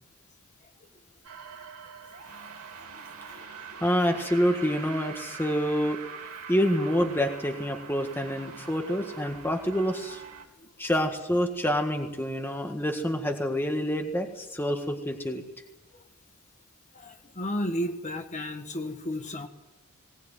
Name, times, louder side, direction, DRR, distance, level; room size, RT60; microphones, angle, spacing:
sound 1, 1.2-10.5, right 6 dB, 85° right, 3.3 m, -43 dB
voice 1, 3.8-6.0 6.5-10.2 10.8-15.4, equal, 10° left, 4 dB, 1.7 m, -27 dB
voice 2, 16.9-19.5, equal, 35° left, 5 dB, 1.8 m, -33 dB
20.0 x 19.0 x 9.3 m, 0.98 s
head